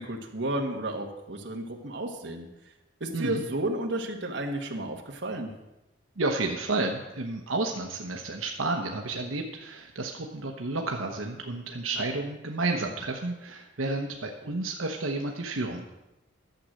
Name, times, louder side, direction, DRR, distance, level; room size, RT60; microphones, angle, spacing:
voice 1, 0.0-2.5 3.0-5.5, right 1 dB, 60° right, 2 dB, 1.6 m, -32 dB
voice 2, 3.1-3.4 6.2-15.9, right 2 dB, 85° right, 2 dB, 1.0 m, -31 dB
12.0 x 7.6 x 6.4 m, 0.98 s
head